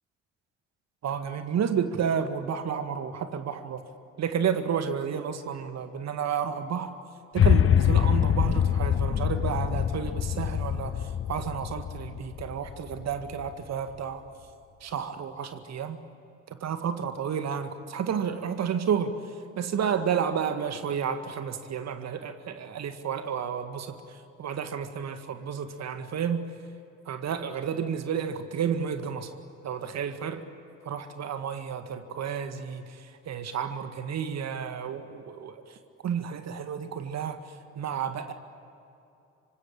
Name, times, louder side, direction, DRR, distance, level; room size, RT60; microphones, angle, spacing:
voice 1, 1.0-3.9 4.2-6.9 7.3-14.2 14.8-16.0 16.5-19.1 19.6-26.5 27.1-29.3 29.6-30.4 30.9-35.8 36.0-38.3, right 7 dB, 45° right, 9 dB, 1.9 m, -31 dB
sound 1, 7.4-13.5, left 9 dB, 35° left, 1.0 m, -25 dB
26.5 x 25.0 x 8.8 m, 2.7 s
figure-of-eight pair, 45°, 36 cm